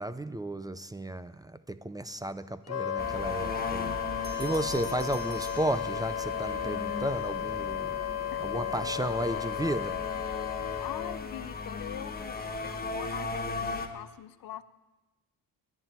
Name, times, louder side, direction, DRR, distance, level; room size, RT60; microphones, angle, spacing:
voice 1, 0.0-8.0 8.4-10.0, right 1 dB, 10° right, 13 dB, 0.4 m, -34 dB
Wind instrument woodwind instrument, 2.7-11.2, left 9 dB, 45° left, 1.0 m, -34 dB
sound 1, 3.0-13.9, left 3 dB, 25° left, 1.2 m, -37 dB
Bell, 4.2-6.5, right 3 dB, 25° right, 1.9 m, -49 dB
voice 2, 8.3-8.6 10.2-10.4 10.8-14.6, left 12 dB, 65° left, 13 dB, 0.6 m, -43 dB
11.0 x 10.0 x 9.3 m, 1.1 s
cardioid pair, 115°, 37 cm